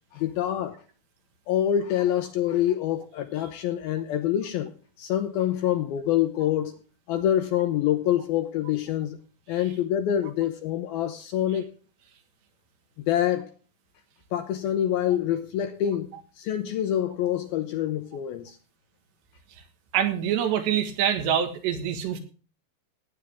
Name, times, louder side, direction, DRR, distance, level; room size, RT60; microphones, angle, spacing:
voice 1, 0.1-0.8 1.5-4.7 5.0-6.8 7.1-9.2 9.5-11.7 13.1-13.5 14.3-18.6, left 11 dB, 75° left, 2.3 m, -26 dB
voice 2, 19.9-22.2, right 9 dB, 75° right, 3.7 m, -25 dB
17.0 x 9.3 x 3.5 m
omnidirectional pair, 5.1 m